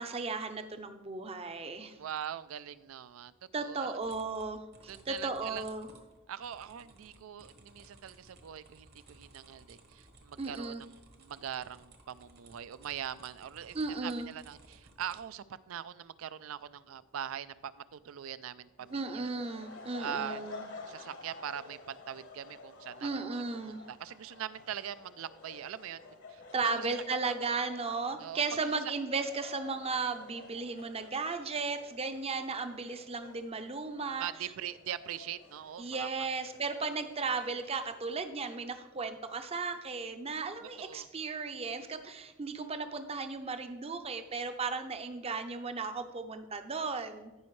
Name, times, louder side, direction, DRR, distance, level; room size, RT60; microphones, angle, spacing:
voice 1, 0.0-2.0 3.5-5.9 10.4-10.8 13.7-14.3 18.9-20.6 23.0-23.8 26.5-34.5 35.8-47.3, right 4 dB, 30° right, 8 dB, 0.6 m, -35 dB
voice 2, 2.0-3.9 4.9-5.6 6.3-10.7 11.2-13.8 14.0-19.3 20.0-20.4 20.9-23.1 23.7-26.0 26.3-26.9 27.2-27.3 28.2-28.9 34.2-36.3 40.8-41.1, right 9 dB, 70° right, 16 dB, 0.4 m, -42 dB
sound 1, 4.0-15.2, right 2 dB, 50° right, 1.1 m, -58 dB
sound 2, 18.8-38.2, left 3 dB, 60° left, 1.1 m, -51 dB
15.0 x 5.2 x 3.1 m, 1.1 s
head